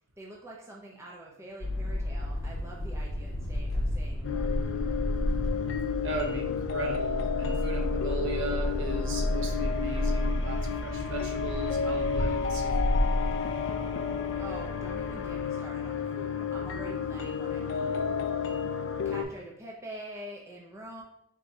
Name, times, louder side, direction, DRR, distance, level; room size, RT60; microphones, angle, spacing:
voice 1, 0.2-4.6 14.4-18.0 18.3-18.5 19.0-21.0, right 1 dB, 10° right, -3 dB, 0.4 m, -45 dB
sound 1, 1.6-15.4, left 1 dB, 75° left, 0.8 m, -32 dB
sound 2, 4.2-19.2, left 7 dB, 55° left, 0.3 m, -32 dB
voice 2, 6.0-13.0, right 3 dB, 55° right, 1 dB, 0.7 m, -37 dB
4.1 x 3.5 x 2.6 m, 0.72 s
head